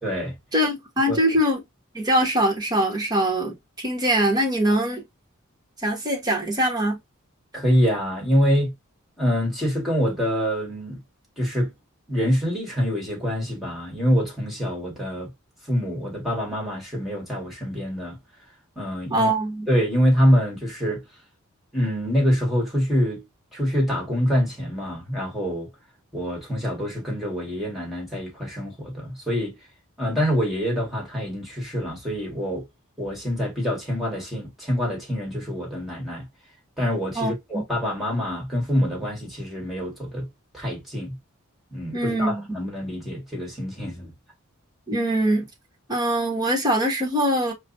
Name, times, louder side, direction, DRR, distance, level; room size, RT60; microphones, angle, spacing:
voice 1, 0.0-0.3 1.1-1.2 7.5-8.7 9.2-11.0 11.4-11.7 12.1-15.3 15.7-18.2 18.8-19.3 19.7-21.0 21.7-23.2 23.5-25.7 26.1-29.6 30.0-32.6 33.0-36.3 36.8-40.3 40.5-41.2 41.7-44.1, equal, ahead, 1.9 m, -25 dB
voice 2, 0.5-1.6 1.9-5.0 5.8-7.0 19.1-19.7 37.1-37.6 41.9-42.5 44.9-45.5 45.9-47.5, right 1 dB, 20° right, 1.3 m, -23 dB
5.1 x 2.4 x 2.7 m
head